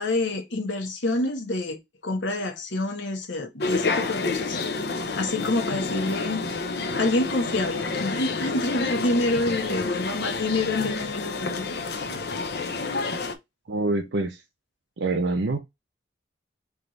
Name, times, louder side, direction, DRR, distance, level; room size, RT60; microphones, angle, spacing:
voice 1, 0.0-4.6 4.9-6.4 6.9-11.6, left 2 dB, 75° left, 1.2 m, -27 dB
sound 1, 3.6-13.3, left 3 dB, 55° left, 0.7 m, -29 dB
voice 2, 13.7-14.4 15.0-15.6, right 2 dB, 70° right, 0.7 m, -25 dB
3.5 x 3.0 x 3.9 m
head